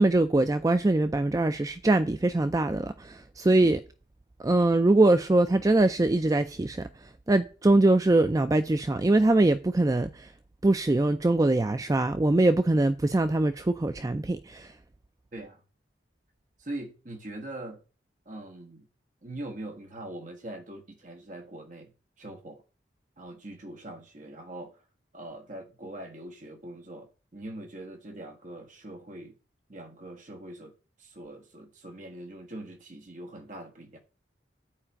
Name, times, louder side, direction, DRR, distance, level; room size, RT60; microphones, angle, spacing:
voice 1, 0.0-3.8 4.4-10.3 10.6-14.7, right 2 dB, 20° right, 0.4 m, -23 dB
voice 2, 15.3-15.6 16.6-17.8 18.2-18.9 19.2-22.6 23.2-24.8 25.1-29.4 29.7-34.0, right 1 dB, 45° right, 1.4 m, -42 dB
10.0 x 4.9 x 7.9 m
head